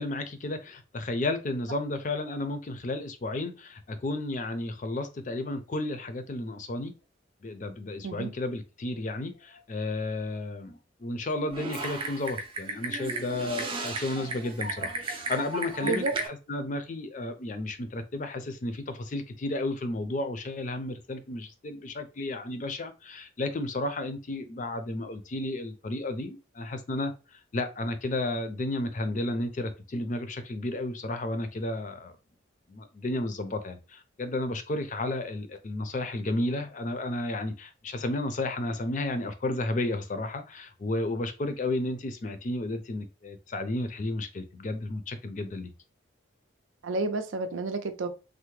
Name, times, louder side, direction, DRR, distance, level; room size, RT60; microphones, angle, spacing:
voice 1, 0.0-6.9 7.4-32.2 32.7-45.7, left 2 dB, 40° left, 0.4 m, -32 dB
Typing, 11.5-16.3, right 2 dB, 25° right, 0.4 m, -34 dB
voice 2, 46.8-48.1, right 3 dB, 85° right, 0.5 m, -30 dB
3.3 x 2.1 x 3.1 m
head